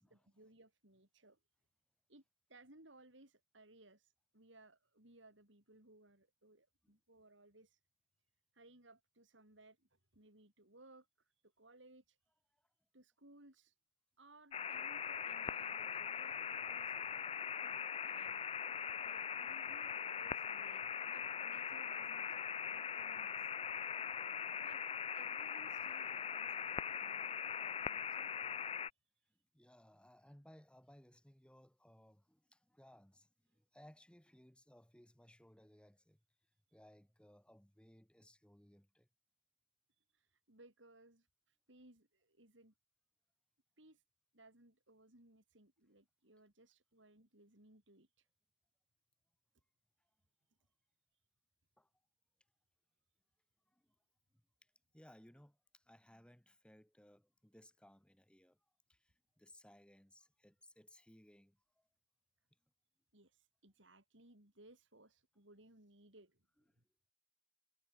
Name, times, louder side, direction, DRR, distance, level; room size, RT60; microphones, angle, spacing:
voice 1, 0.0-1.4 2.1-2.2 2.5-7.8 8.5-12.2 12.9-13.8 14.2-17.2 17.6-18.4 19.0-23.5 24.6-24.8 25.1-28.3 28.6-28.7 40.0-42.7 43.8-44.0 44.3-48.3 63.1-66.4 66.8-66.9, right 2 dB, 75° right, 6.0 m, -64 dB
sound 1, 14.5-28.9, left 7 dB, 30° left, 0.4 m, -41 dB
voice 2, 29.3-36.2 36.7-39.1 51.8-51.9 53.7-53.9 54.3-58.6 58.9-61.9, equal, 5° left, 1.6 m, -64 dB
head